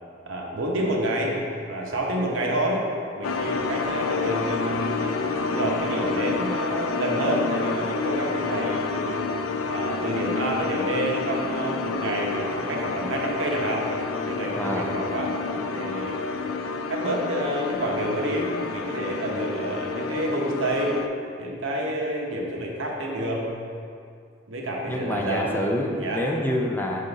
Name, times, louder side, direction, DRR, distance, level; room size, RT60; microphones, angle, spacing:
voice 1, 0.3-1.4 1.7-2.8 3.2-5.2 5.6-9.2 9.6-13.9 14.2-16.2 16.9-21.0 21.4-23.5 24.5-25.6 26.0-26.2, right 1 dB, 70° right, -1 dB, 0.9 m, -28 dB
sound 1, 3.2-21.1, left 4 dB, 80° left, 0.4 m, -29 dB
voice 2, 14.5-14.9 24.9-27.0, left 1 dB, 10° left, 0 dB, 0.4 m, -27 dB
6.6 x 3.7 x 3.9 m, 2.3 s
head